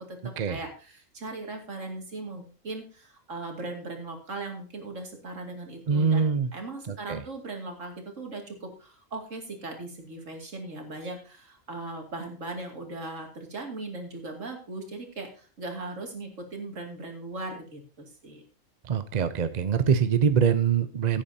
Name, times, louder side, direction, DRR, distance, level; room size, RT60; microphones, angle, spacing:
voice 1, 0.0-18.4, right 2 dB, 70° right, 3 dB, 2.8 m, -39 dB
voice 2, 5.9-6.5 6.9-7.2 18.9-21.2, right 7 dB, 40° right, 11 dB, 0.7 m, -24 dB
16.5 x 8.7 x 2.8 m, 0.37 s
omnidirectional pair, 1.4 m